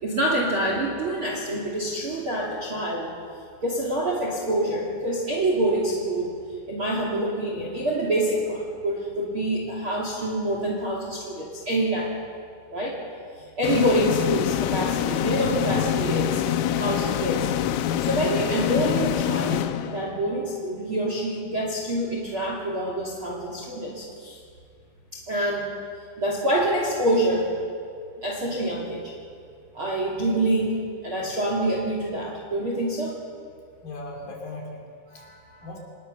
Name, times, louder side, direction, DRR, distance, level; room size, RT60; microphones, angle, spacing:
voice 1, 0.0-3.1 3.6-6.3 6.7-12.1 12.7-13.0 13.6-16.4 16.7-17.5 18.0-24.4 25.1-25.7 26.2-27.5 28.2-29.1 29.7-30.8 31.0-33.1 35.1-35.7, right 1 dB, 35° right, -1 dB, 2.4 m, -26 dB
sound 1, 13.6-20.4, left 11 dB, 85° left, 3.5 m, -25 dB
voice 2, 33.8-35.3 35.6-35.8, left 2 dB, 50° left, 0 dB, 4.5 m, -38 dB
25.5 x 20.0 x 6.8 m, 2.2 s
omnidirectional pair, 5.8 m